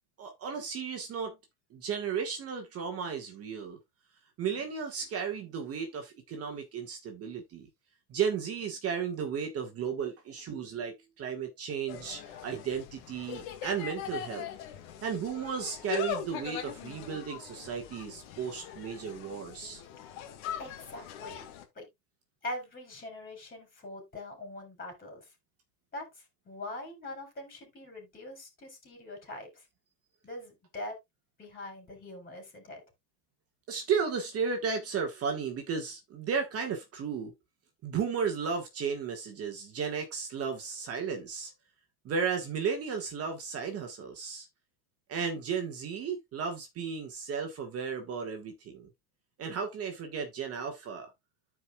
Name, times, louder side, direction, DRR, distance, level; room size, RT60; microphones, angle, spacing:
voice 1, 0.2-1.4 1.7-3.8 4.4-7.7 8.1-14.5 15.0-19.8 33.7-37.3 37.8-41.5 42.0-44.5 45.1-48.9 49.4-51.1, right 6 dB, 30° right, 1.7 m, -34 dB
Insect, 11.9-21.7, left 9 dB, 60° left, 1.9 m, -41 dB
voice 2, 20.6-21.9 22.4-25.3 25.9-29.7 30.2-31.0 31.4-32.8, left 1 dB, 20° left, 4.2 m, -43 dB
14.0 x 4.9 x 2.4 m
supercardioid pair, 130°, 46 cm